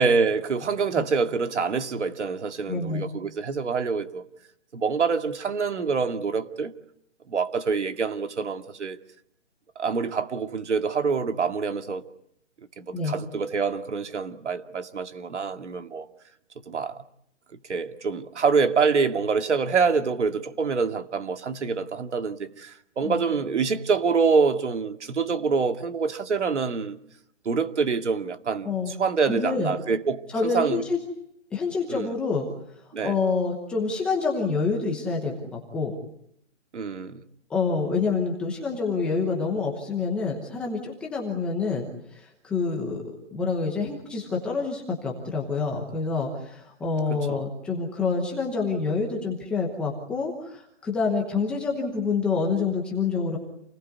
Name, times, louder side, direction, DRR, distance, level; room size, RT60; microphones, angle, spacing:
voice 1, 0.0-4.2 4.7-6.7 7.3-9.0 9.8-12.0 12.8-16.1 16.7-17.0 17.7-27.0 27.5-30.8 31.9-32.1 32.9-33.2 36.7-37.2 47.1-47.4, right 5 dB, 65° right, 2.4 m, -26 dB
voice 2, 2.7-3.0 12.9-13.1 23.0-23.2 28.6-29.0 29.3-29.7 30.3-31.0 31.5-32.5 33.0-35.9 37.5-43.0 43.3-53.4, left 4 dB, 5° left, 1.0 m, -27 dB
28.5 x 20.5 x 9.5 m
hypercardioid pair, 175°, 37 cm